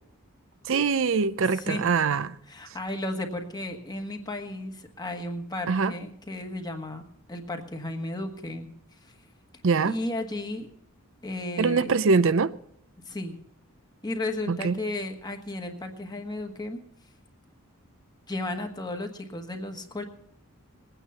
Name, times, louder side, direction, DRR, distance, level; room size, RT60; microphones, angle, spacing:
voice 1, 0.6-2.3 5.7-5.9 9.6-10.0 11.6-12.5 14.5-14.8, right 4 dB, 60° right, 0.5 m, -23 dB
voice 2, 1.5-2.0 2.5-7.0 7.3-8.7 9.0-9.1 9.8-10.7 11.2-11.9 13.0-13.3 14.0-16.8 18.3-20.0, left 1 dB, 20° left, 1.4 m, -34 dB
20.0 x 9.1 x 5.7 m
head